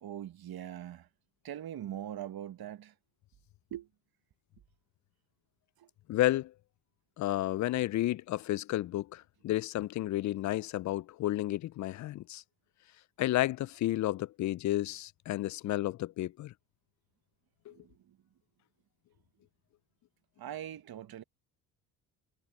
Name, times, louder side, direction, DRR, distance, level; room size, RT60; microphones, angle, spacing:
voice 1, 0.0-1.1 1.4-2.9 3.7-3.9 5.8-5.9 17.7-18.2 20.4-21.2, right 11 dB, 50° right, 1.5 m, -42 dB
voice 2, 6.1-6.5 7.2-12.4 13.2-16.5 17.7-17.8, left 15 dB, 40° left, 0.5 m, -31 dB
hypercardioid pair, 65°, 47 cm